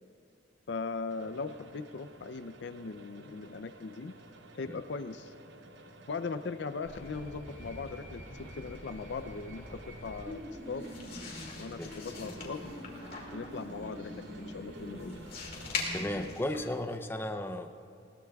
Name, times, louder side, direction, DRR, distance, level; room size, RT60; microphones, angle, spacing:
voice 1, 0.7-4.1 4.6-5.3 6.1-10.4 10.7-10.9 11.6-12.7 13.3-15.2, left 4 dB, 65° left, 11 dB, 0.5 m, -39 dB
sound 1, 1.1-16.0, right 2 dB, 70° right, 0.8 m, -54 dB
sound 2, 6.8-16.2, equal, 45° right, 3.0 m, -46 dB
sound 3, 10.8-17.0, left 4 dB, 50° left, 2.2 m, -42 dB
voice 2, 15.9-17.7, left 1 dB, 10° left, 5 dB, 0.4 m, -34 dB
20.5 x 18.0 x 2.3 m, 2.4 s
head